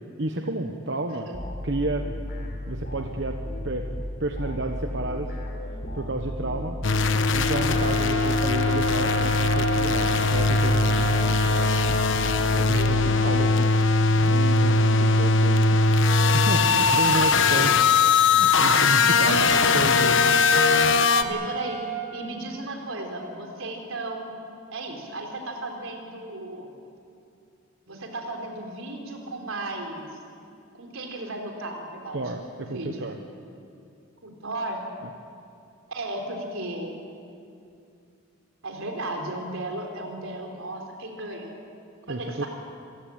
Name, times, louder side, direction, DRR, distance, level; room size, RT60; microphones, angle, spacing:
voice 1, 0.0-1.3 1.6-2.1 2.7-3.4 3.6-3.8 4.2-5.3 5.9-6.8 7.3-11.4 12.6-15.8 16.3-17.8 18.2-20.2 32.1-33.2 35.0-35.1 42.1-42.4, right 2 dB, 60° right, 4 dB, 1.1 m, -31 dB
voice 2, 1.1-1.4 12.6-13.1 19.3-20.0 21.1-21.8 22.1-24.3 24.7-26.7 27.9-30.2 30.7-32.2 32.5-33.0 34.2-34.8 35.9-37.0 38.6-41.5 42.1-42.5, right 2 dB, 85° right, 2 dB, 4.0 m, -34 dB
sound 1, 1.3-13.5, left 1 dB, 45° left, 3.7 m, -34 dB
sound 2, 6.8-21.2, left 4 dB, 65° left, 1.0 m, -20 dB
sound 3, 7.4-12.1 20.0-22.0, right 5 dB, 10° left, 6.1 m, -33 dB
27.5 x 15.5 x 8.8 m, 2.5 s
head